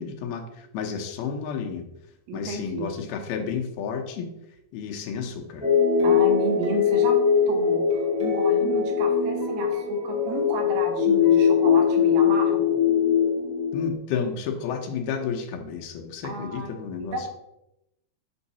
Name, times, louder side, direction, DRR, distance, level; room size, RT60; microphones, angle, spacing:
voice 1, 0.0-1.9 2.3-4.3 4.7-5.7 13.7-17.3, left 6 dB, 80° left, 3 dB, 2.6 m, -31 dB
voice 2, 2.3-2.9 6.0-7.2 7.5-12.8 16.2-16.7 17.0-17.3, right 3 dB, 70° right, 2 dB, 2.5 m, -33 dB
sound 1, 5.6-13.9, left 7 dB, 5° right, 0.4 m, -21 dB
6.3 x 5.6 x 4.0 m, 0.86 s
omnidirectional pair, 4.5 m